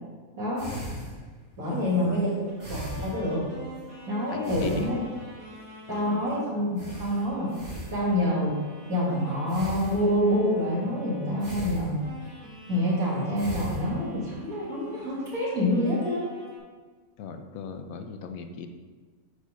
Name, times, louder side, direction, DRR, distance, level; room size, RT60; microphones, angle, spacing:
voice 1, 0.4-0.7 1.6-2.3 2.7-3.5 4.1-5.0 5.9-7.5 7.9-8.5 8.9-12.0 12.7-16.3, left 1 dB, 85° right, -6 dB, 2.8 m, -27 dB
sound 1, 0.6-3.9 4.4-5.4 5.9-6.0 6.3-6.4 6.8-8.4 9.5-10.4 11.4-12.4 13.0-14.5 15.0-15.3, equal, 30° right, 2.1 m, -39 dB
voice 2, 1.6-2.3 4.3-5.0 5.9-6.3 17.2-18.7, left 5 dB, 75° left, 7 dB, 1.1 m, -38 dB
sound 2, 2.5-6.4 6.8-11.7 12.0-15.3 15.7-16.6, right 1 dB, 55° right, 2.2 m, -47 dB
7.1 x 4.3 x 5.2 m, 1.4 s
omnidirectional pair, 1.5 m